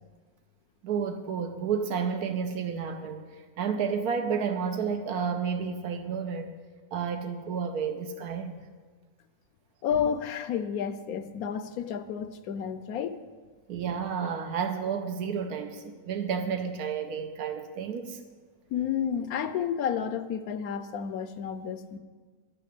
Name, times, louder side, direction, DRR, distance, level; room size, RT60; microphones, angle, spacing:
voice 1, 0.8-6.5 6.9-8.7 13.7-18.2, right 6 dB, 85° right, 6 dB, 1.3 m, -31 dB
voice 2, 9.8-13.2 18.7-22.0, left 8 dB, 75° left, 12 dB, 1.1 m, -31 dB
11.0 x 8.6 x 6.6 m, 1.5 s
omnidirectional pair, 1.6 m